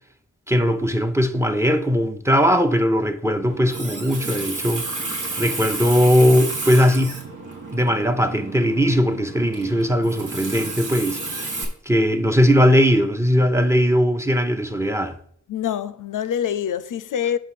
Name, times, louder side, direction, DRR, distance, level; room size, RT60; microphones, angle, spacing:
voice 1, 0.5-4.8 5.4-7.2 7.7-11.6 11.9-15.2, equal, 10° right, 0.7 m, -19 dB
Water tap faucet, 3.5-11.6, right 3 dB, 80° right, 1.4 m, -31 dB
voice 2, 15.5-17.4, left 9 dB, 85° left, 0.5 m, -25 dB
5.5 x 4.6 x 5.8 m
cardioid pair, 60°, 30 cm